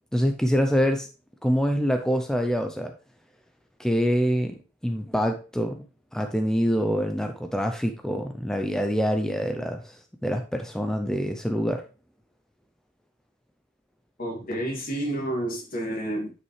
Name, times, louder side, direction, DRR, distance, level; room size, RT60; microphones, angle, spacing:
voice 1, 0.1-1.1 1.4-2.9 3.8-11.8, equal, 5° left, 0.5 m, -25 dB
voice 2, 14.2-16.3, right 1 dB, 45° left, 2.5 m, -30 dB
9.5 x 5.5 x 3.2 m
head